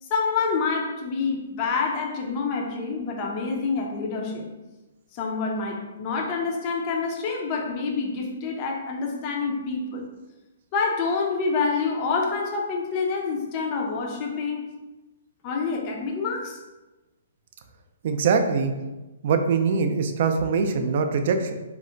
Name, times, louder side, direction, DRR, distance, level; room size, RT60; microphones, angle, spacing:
voice 1, 0.0-4.5 5.1-10.1 10.7-14.7 15.4-16.6, left 4 dB, 30° left, 0 dB, 0.4 m, -27 dB
voice 2, 18.0-18.7 19.2-21.5, right 5 dB, 50° right, 6 dB, 0.3 m, -23 dB
2.4 x 2.1 x 3.8 m, 1.1 s
hypercardioid pair, 160°, 0 cm